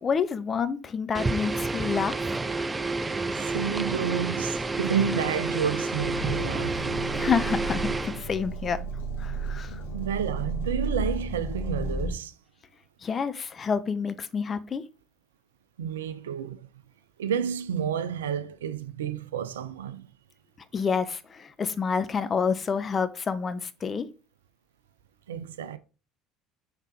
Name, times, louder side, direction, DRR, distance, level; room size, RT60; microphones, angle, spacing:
voice 1, 0.0-2.4 7.1-8.8 9.2-9.8 13.0-14.8 20.7-24.1, left 6 dB, 35° left, 0.7 m, -28 dB
sound 1, 1.1-8.2, right 3 dB, 20° right, 0.4 m, -29 dB
voice 2, 3.4-7.0 7.9-8.0 9.9-12.3 15.8-16.7 17.2-20.1 25.3-25.8, right 8 dB, 80° right, 0.4 m, -30 dB
sound 2, 6.0-12.1, right 2 dB, 75° left, 1.2 m, -33 dB
5.6 x 3.7 x 4.6 m
figure-of-eight pair, 65°, 0 cm